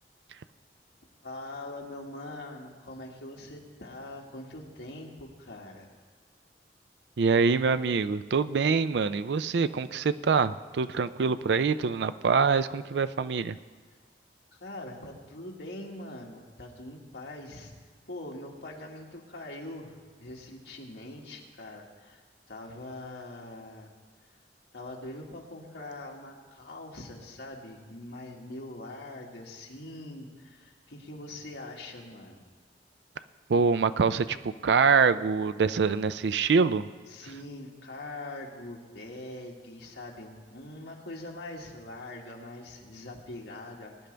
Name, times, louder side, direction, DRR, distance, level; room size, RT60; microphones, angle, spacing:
voice 1, 1.2-5.9 14.5-17.7 18.1-22.2 22.5-23.9 24.7-32.4 37.1-44.1, left 1 dB, 80° left, -2 dB, 1.9 m, -43 dB
voice 2, 7.2-13.6 33.5-36.8, right 5 dB, 70° right, 13 dB, 0.4 m, -25 dB
20.5 x 10.5 x 3.4 m, 1.4 s
head